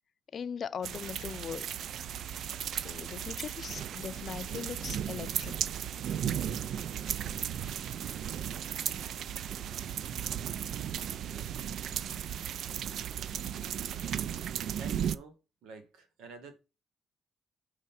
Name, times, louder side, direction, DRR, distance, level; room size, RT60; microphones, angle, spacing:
voice 1, 0.3-1.7 2.7-5.7, left 7 dB, 55° left, 0.4 m, -40 dB
sound 1, 0.8-15.2, right 9 dB, 70° right, 0.3 m, -35 dB
sound 2, 1.8-10.8, right 1 dB, 15° right, 1.7 m, -57 dB
voice 2, 14.8-16.6, right 4 dB, 85° right, 1.4 m, -48 dB
6.5 x 3.1 x 5.7 m
cardioid pair, 90°, 0 cm